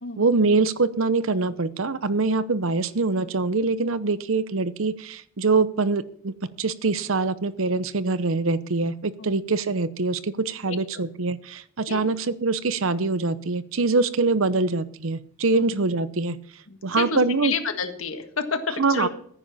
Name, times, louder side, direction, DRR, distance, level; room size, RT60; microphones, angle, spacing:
voice 1, 0.2-6.3 6.6-16.4 16.8-17.5 18.8-19.1, right 3 dB, 75° right, 15 dB, 0.8 m, -24 dB
voice 2, 16.7-19.1, left 5 dB, 75° left, 7 dB, 1.7 m, -30 dB
15.0 x 9.9 x 4.2 m, 0.62 s
head